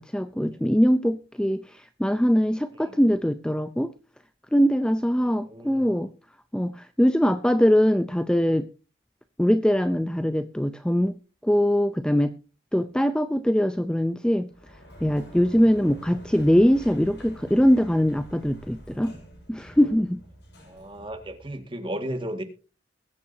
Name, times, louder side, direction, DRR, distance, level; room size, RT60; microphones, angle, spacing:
voice 1, 0.0-3.9 4.5-6.1 6.5-8.7 9.4-11.1 11.4-12.3 12.7-14.5 15.0-19.1 19.5-20.2, equal, 5° left, 10 dB, 0.5 m, -22 dB
voice 2, 5.2-6.0 15.5-15.7 20.7-22.4, right 1 dB, 30° right, 6 dB, 1.8 m, -35 dB
Sliding door, 14.5-21.6, equal, 65° left, 6.9 m, -46 dB
21.5 x 8.5 x 2.7 m, 0.36 s
head